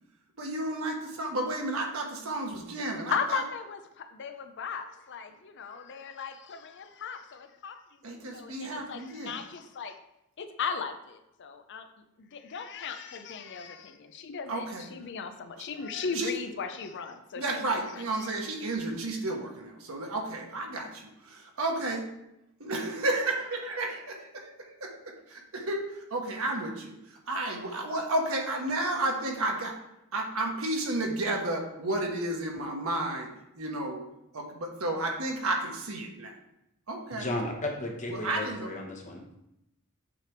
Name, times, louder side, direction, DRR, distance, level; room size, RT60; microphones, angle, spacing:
voice 1, 0.4-3.4 8.0-9.3 14.5-14.9 16.1-16.3 17.4-22.0 22.6-24.0 24.8-27.0 27.3-29.7 30.1-33.3 33.6-34.0 34.3-36.3 36.9-37.3 38.1-38.7, right 2 dB, 70° right, 1 dB, 1.2 m, -32 dB
voice 2, 3.1-10.0 10.4-11.9 12.2-17.6 17.9-18.3, left 6 dB, 55° left, 8 dB, 0.5 m, -37 dB
voice 3, 37.1-39.3, left 1 dB, 35° left, 1 dB, 1.1 m, -34 dB
7.5 x 3.4 x 4.5 m, 0.86 s
head